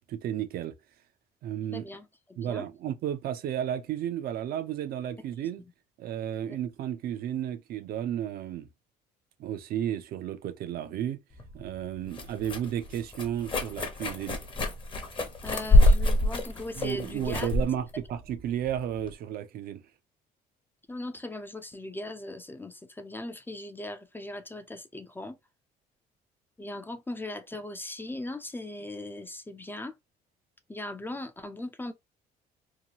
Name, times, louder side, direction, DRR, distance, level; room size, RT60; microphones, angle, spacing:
voice 1, 0.1-0.7 1.4-1.9 2.4-5.6 6.0-8.7 9.4-11.2 11.5-14.4 16.8-19.8, right 10 dB, 65° right, 0.5 m, -33 dB
voice 2, 1.7-2.7 6.5-6.6 12.0-12.1 15.4-17.5 20.9-25.4 26.6-29.9 30.7-31.9, left 1 dB, 10° left, 0.4 m, -39 dB
sound 1, 11.4-19.1, left 1 dB, 30° left, 0.8 m, -26 dB
2.8 x 2.3 x 2.8 m
cardioid pair, 110°, 17 cm